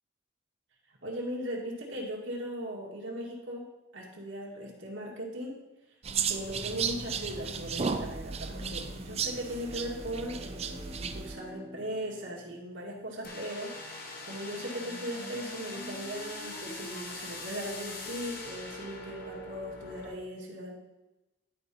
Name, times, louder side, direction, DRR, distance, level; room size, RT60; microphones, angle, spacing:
voice 1, 1.0-3.7 3.9-5.6 6.3-20.7, equal, 75° right, -2 dB, 2.1 m, -38 dB
sound 1, 6.0-11.4, right 6 dB, 30° right, 0.4 m, -34 dB
Bowed string instrument, 8.4-13.5, equal, 15° right, 1.0 m, -50 dB
sound 2, 13.2-20.1, left 2 dB, 50° left, 1.4 m, -42 dB
11.5 x 5.0 x 4.2 m, 1.0 s
head